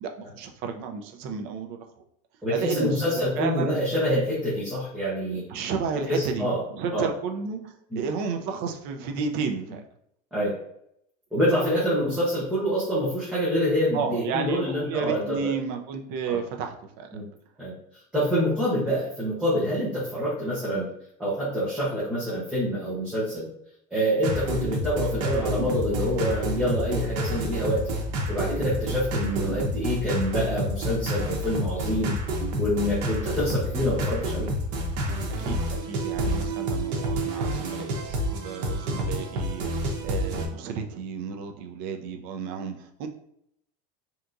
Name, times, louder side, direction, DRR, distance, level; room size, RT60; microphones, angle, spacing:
voice 1, 0.0-1.8 2.5-3.8 5.3-6.5 6.7-9.8 13.9-17.2 35.4-43.1, right 6 dB, 50° right, 5 dB, 0.5 m, -32 dB
voice 2, 2.4-5.4 6.1-6.6 6.9-7.1 7.9-8.0 10.3-10.5 11.3-15.5 16.3-16.4 17.1-17.3 17.6-17.7 18.1-20.9 21.2-23.5 23.9-27.9 28.3-32.2 32.6-34.5, equal, 5° right, -10 dB, 0.8 m, -26 dB
sound 1, 24.2-40.5, equal, 90° right, 0.9 m, -29 dB
3.5 x 2.8 x 2.5 m, 0.73 s
cardioid pair, 175°, 21 cm